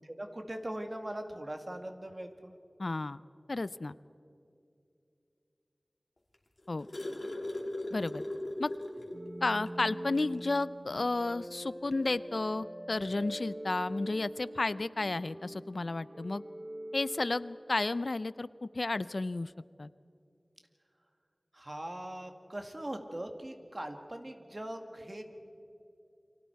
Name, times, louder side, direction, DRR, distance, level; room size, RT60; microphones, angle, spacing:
voice 1, 0.0-2.6 21.5-25.3, right 1 dB, 40° right, 5 dB, 2.1 m, -41 dB
voice 2, 2.8-3.2 3.5-4.0 6.7-6.9 7.9-8.2 8.6-8.7 9.4-16.4 16.9-19.5 19.8-19.9, left 2 dB, 70° left, 17 dB, 0.5 m, -32 dB
sound 1, 6.3-9.3 9.7-9.8 10.1-10.4 11.5-11.6, left 1 dB, 50° left, 3.0 m, -38 dB
sound 2, 9.1-18.1, right 1 dB, 75° right, 6.9 m, -44 dB
29.5 x 24.5 x 4.7 m, 2.6 s
wide cardioid pair, 50°, 0 cm